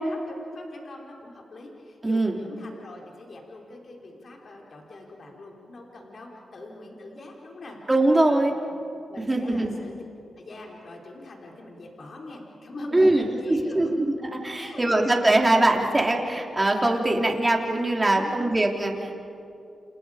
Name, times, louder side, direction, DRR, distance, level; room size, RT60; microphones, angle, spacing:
voice 1, 0.0-7.8 8.2-8.5 9.1-10.0 10.4-14.0 14.6-15.2 18.1-18.6, left 2 dB, 60° left, 0 dB, 3.9 m, -43 dB
voice 2, 2.0-2.4 7.9-8.5 9.3-9.7 12.9-19.1, right 2 dB, 20° right, 1 dB, 3.3 m, -22 dB
29.5 x 29.0 x 5.0 m, 2.6 s
cardioid pair, 70°, 0 cm